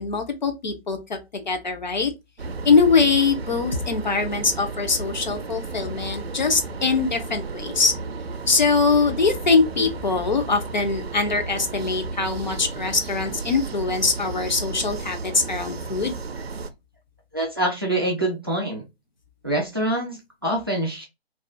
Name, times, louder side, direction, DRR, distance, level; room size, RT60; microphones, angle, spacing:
voice 1, 0.0-2.1 2.6-7.9 8.5-16.2, left 4 dB, 45° left, 0.5 m, -22 dB
sound 1, 2.4-16.7, right 4 dB, 75° right, 0.5 m, -33 dB
voice 2, 17.3-18.8 19.4-21.1, right 1 dB, 25° right, 0.4 m, -25 dB
2.4 x 2.2 x 2.3 m
figure-of-eight pair, 145°, 31 cm